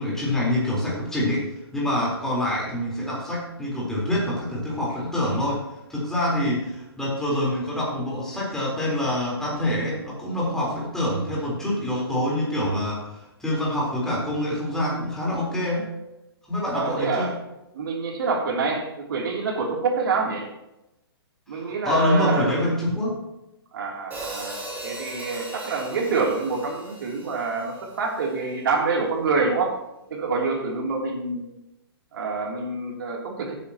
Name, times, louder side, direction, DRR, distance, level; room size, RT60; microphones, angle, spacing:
voice 1, 0.0-5.6 5.9-15.9 16.5-17.3 21.5-23.2, left 1 dB, 5° left, -5 dB, 4.1 m, -26 dB
voice 2, 16.7-17.3 17.7-20.5 21.5-22.5 23.7-29.8 30.1-31.5 32.1-33.5, right 4 dB, 55° right, 0 dB, 3.2 m, -26 dB
Hi-hat, 24.1-28.3, right 1 dB, 15° right, 3.3 m, -38 dB
15.5 x 9.5 x 3.0 m, 0.93 s
hypercardioid pair, 130°, 13 cm